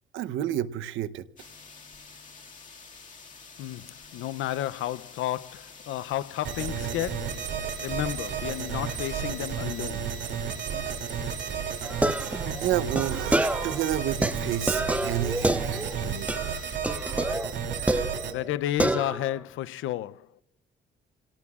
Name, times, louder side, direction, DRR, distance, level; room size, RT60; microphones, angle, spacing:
voice 1, 0.1-1.3 12.1-12.3 12.6-16.5 17.8-18.2, right 11 dB, 80° right, 0.8 m, -31 dB
sound 1, 1.4-16.8, left 5 dB, 40° left, 2.1 m, -48 dB
voice 2, 3.6-7.5 7.8-10.1 18.3-20.3, left 13 dB, 80° left, 0.5 m, -32 dB
sound 2, 6.4-18.3, right 7 dB, 65° right, 2.7 m, -32 dB
sound 3, 11.8-13.8 14.2-16.0 16.3-16.6 16.8-18.5 18.8-19.4, right 1 dB, 5° right, 0.6 m, -28 dB
28.5 x 18.0 x 2.4 m
cardioid pair, 90°, 20 cm